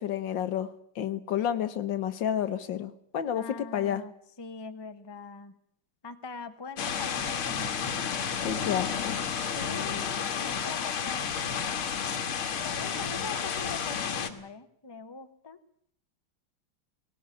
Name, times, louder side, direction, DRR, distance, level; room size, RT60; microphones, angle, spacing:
voice 1, 0.0-4.0 8.4-9.2, left 10 dB, 65° left, 12 dB, 1.6 m, -30 dB
voice 2, 3.3-4.1 4.4-5.6 6.0-8.0 9.4-11.5 12.6-15.6, left 4 dB, 20° left, 8 dB, 0.8 m, -43 dB
sound 1, 6.8-14.3, left 7 dB, 85° left, 2.4 m, -31 dB
18.0 x 18.0 x 9.9 m, 0.69 s
omnidirectional pair, 2.3 m